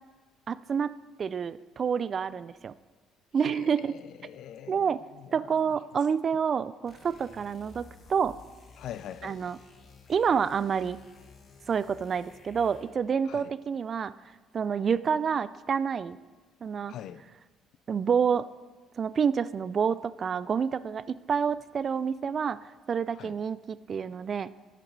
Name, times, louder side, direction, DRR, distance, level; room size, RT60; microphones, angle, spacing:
voice 1, 0.5-0.9 1.2-2.7 3.3-3.9 4.7-5.0 5.3-8.4 9.2-9.6 10.1-11.0 11.7-14.1 14.5-16.2 16.6-16.9 17.9-18.5 19.0-22.6 22.9-24.5, right 6 dB, 40° right, 0.3 m, -28 dB
voice 2, 3.4-5.8 8.8-9.4 13.2-13.5 16.9-17.2 23.1-23.4, left 10 dB, 65° left, 0.4 m, -44 dB
sound 1, 6.8-13.1, left 4 dB, 45° left, 1.4 m, -53 dB
9.3 x 6.9 x 4.6 m
cardioid pair, 95°, 0 cm